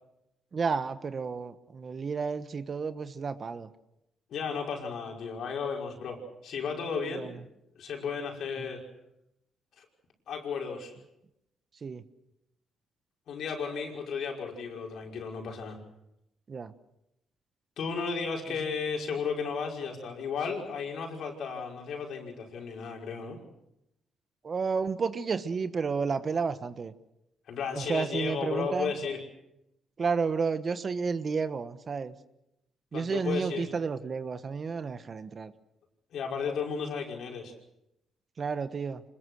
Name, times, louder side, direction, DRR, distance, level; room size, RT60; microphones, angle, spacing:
voice 1, 0.5-3.7 7.0-7.4 8.5-8.7 11.8-12.0 16.5-16.7 18.5-18.6 24.4-26.9 27.7-28.9 30.0-32.1 32.9-35.5 38.4-39.0, right 5 dB, 40° right, 12 dB, 1.3 m, -31 dB
voice 2, 4.3-7.3 7.8-8.8 9.8-9.9 10.3-10.9 13.3-15.8 17.8-23.4 27.5-29.2 32.9-33.6 36.1-37.5, left 5 dB, 70° left, 1 dB, 5.4 m, -34 dB
26.0 x 21.0 x 6.4 m, 0.86 s
cardioid pair, 90°, 0 cm